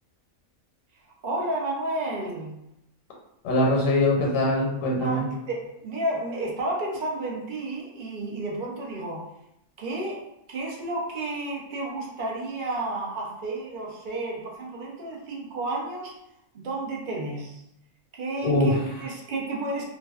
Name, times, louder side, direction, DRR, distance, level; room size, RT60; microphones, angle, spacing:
voice 1, 1.2-2.5 4.9-9.2 9.8-16.1 16.5-17.6 18.1-19.8, right 2 dB, 55° right, -3 dB, 0.6 m, -31 dB
voice 2, 3.4-5.3 18.4-18.8, left 1 dB, 80° left, -2 dB, 1.0 m, -22 dB
2.5 x 2.1 x 2.3 m, 0.83 s
omnidirectional pair, 1.4 m